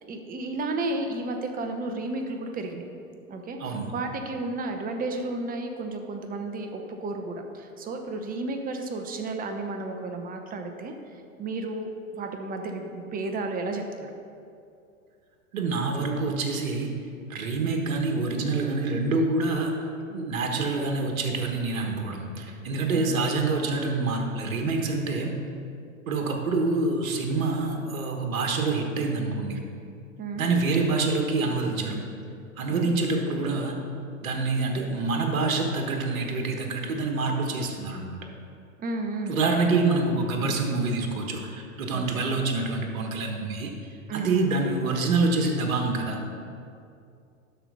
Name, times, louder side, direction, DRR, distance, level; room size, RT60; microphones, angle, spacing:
voice 1, 0.0-2.8 3.3-10.9 11.4-14.1 23.1-23.2 30.2-30.5 32.7-32.9 38.8-39.4 41.9-42.3 44.1-44.5, right 2 dB, 20° right, 4 dB, 0.8 m, -33 dB
voice 2, 3.6-3.9 15.5-16.9 17.3-19.7 20.1-25.3 26.1-29.6 30.3-32.0 32.6-33.8 34.2-38.2 39.3-43.7 44.1-46.2, right 3 dB, 70° right, 3 dB, 1.5 m, -26 dB
12.0 x 4.6 x 5.4 m, 2.5 s
hypercardioid pair, 105°, 42 cm